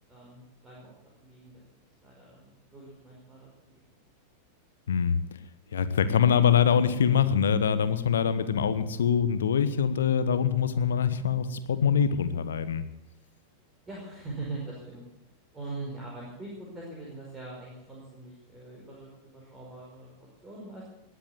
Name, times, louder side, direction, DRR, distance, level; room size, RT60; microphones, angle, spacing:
voice 1, 0.1-0.9 1.2-1.6 2.0-3.8 13.1-13.2 13.9-15.0 15.5-20.1 20.4-20.9, right 2 dB, 15° right, -4 dB, 5.3 m, -42 dB
voice 2, 4.9-5.2 5.7-12.8, left 7 dB, 65° left, 12 dB, 1.2 m, -24 dB
20.5 x 8.2 x 8.2 m, 0.89 s
figure-of-eight pair, 90°, 0 cm